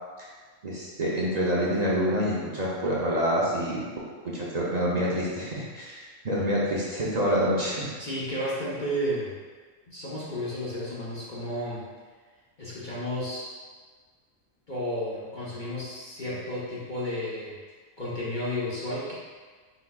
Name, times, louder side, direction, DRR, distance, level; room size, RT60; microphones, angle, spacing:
voice 1, 0.6-3.8 4.2-7.9, equal, 45° right, -6 dB, 0.6 m, -27 dB
voice 2, 8.0-9.3 9.9-11.8 12.6-13.5 14.7-17.6 18.0-19.1, equal, 40° left, -8 dB, 0.8 m, -32 dB
4.7 x 4.0 x 2.3 m, 1.5 s
omnidirectional pair, 1.4 m